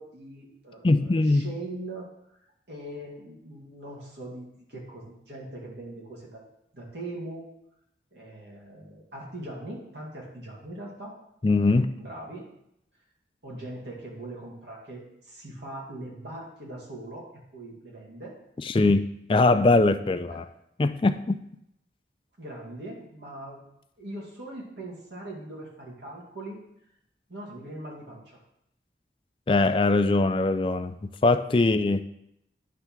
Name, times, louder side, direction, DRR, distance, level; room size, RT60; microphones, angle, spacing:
voice 1, 0.0-2.1 2.3-2.4 2.7-6.4 6.7-7.5 8.1-11.1 12.0-12.4 13.4-17.3 17.5-18.3 20.3-20.4 22.4-23.6 24.0-26.6 27.3-28.2, right 1 dB, 80° right, -3 dB, 2.2 m, -41 dB
voice 2, 0.8-1.5 11.4-11.9 18.6-19.0 19.3-20.4 20.8-21.4 29.5-31.0 31.2-32.0, left 2 dB, 30° left, 9 dB, 0.3 m, -21 dB
9.6 x 3.4 x 5.9 m, 0.80 s
head